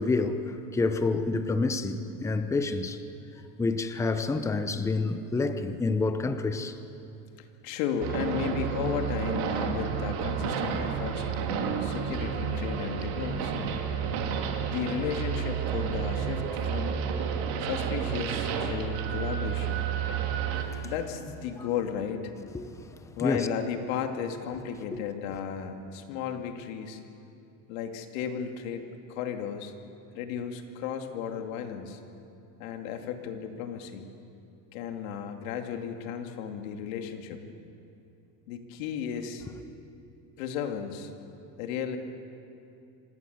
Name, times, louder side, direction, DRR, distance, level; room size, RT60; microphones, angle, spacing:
voice 1, 0.0-3.0 3.6-6.8 20.7-20.8 22.5-23.5, left 3 dB, 5° left, 0.8 m, -28 dB
voice 2, 7.4-13.7 14.6-17.0 17.6-19.9 20.8-22.3 23.2-27.0 27.7-29.7 30.1-32.0 32.6-34.1 34.7-37.4 38.5-39.5 40.4-41.1 41.6-42.0, left 8 dB, 90° left, 2.6 m, -34 dB
sound 1, 8.0-20.6, right 7 dB, 60° right, 2.7 m, -30 dB
27.0 x 19.0 x 8.0 m
cardioid pair, 165°, 39 cm